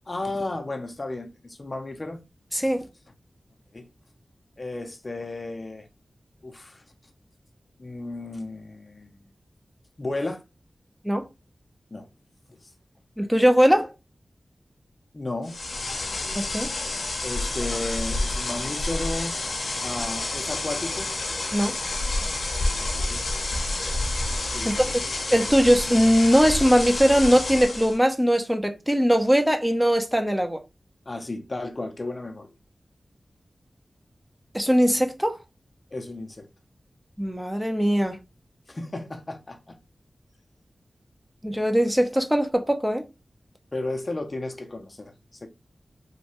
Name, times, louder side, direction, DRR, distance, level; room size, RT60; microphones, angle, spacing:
voice 1, 0.1-2.2 3.7-3.9 4.6-5.9 6.4-6.8 7.8-9.2 10.0-10.4 11.9-12.1 12.5-12.7 15.1-15.6 17.2-19.3 19.8-21.1 22.8-23.2 24.5-25.0 31.1-32.5 35.9-36.5 38.7-39.8 43.7-45.1 45.4-45.5, left 2 dB, 45° left, 0.5 m, -33 dB
voice 2, 2.5-2.9 11.0-11.3 13.2-13.9 16.3-16.7 21.5-21.7 24.6-24.9 25.3-30.6 34.5-35.4 37.2-38.2 41.4-43.0, equal, 10° right, 0.6 m, -20 dB
sound 1, 15.4-28.0, left 2 dB, 85° left, 0.7 m, -29 dB
3.1 x 2.2 x 2.8 m
cardioid pair, 50°, 0 cm